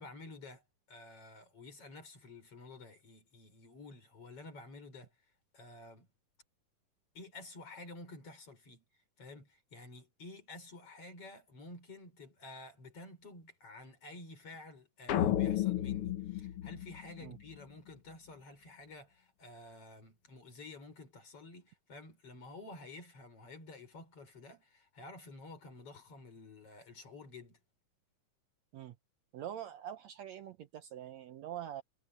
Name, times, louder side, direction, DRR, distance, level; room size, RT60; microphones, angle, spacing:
voice 1, 0.0-5.1 5.5-6.1 7.1-27.6, left 2 dB, 45° left, 5.8 m, -51 dB
sound 1, 15.1-17.5, left 12 dB, 60° left, 1.6 m, -33 dB
voice 2, 29.3-31.8, right 11 dB, 70° right, 1.9 m, -44 dB
omnidirectional pair, 3.7 m